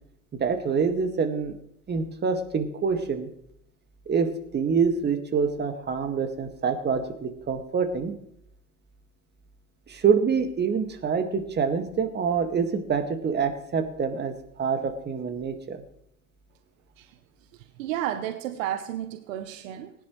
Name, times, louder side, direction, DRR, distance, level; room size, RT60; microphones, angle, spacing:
voice 1, 0.4-1.6 1.9-3.3 4.1-8.1 9.9-14.3 14.6-15.8, right 6 dB, 25° right, 6 dB, 2.0 m, -26 dB
voice 2, 17.5-19.9, right 11 dB, 60° right, 9 dB, 1.0 m, -32 dB
19.5 x 10.5 x 3.2 m, 0.73 s
hypercardioid pair, 90°, 44 cm